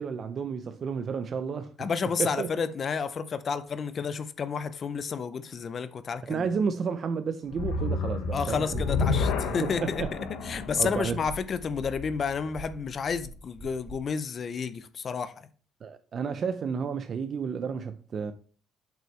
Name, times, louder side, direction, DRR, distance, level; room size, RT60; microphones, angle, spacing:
voice 1, 0.0-1.7 2.2-2.5 6.3-8.8 9.6-10.1 10.8-11.2 15.8-18.3, right 6 dB, 40° right, 0.5 m, -31 dB
voice 2, 1.8-6.5 8.3-10.1 10.4-15.3, left 6 dB, 35° left, 0.5 m, -31 dB
sound 1, 7.5-12.8, left 4 dB, 85° left, 1.0 m, -31 dB
sound 2, 9.8-14.0, right 3 dB, 55° right, 2.7 m, -45 dB
7.6 x 5.6 x 3.1 m
cardioid pair, 140°, 0 cm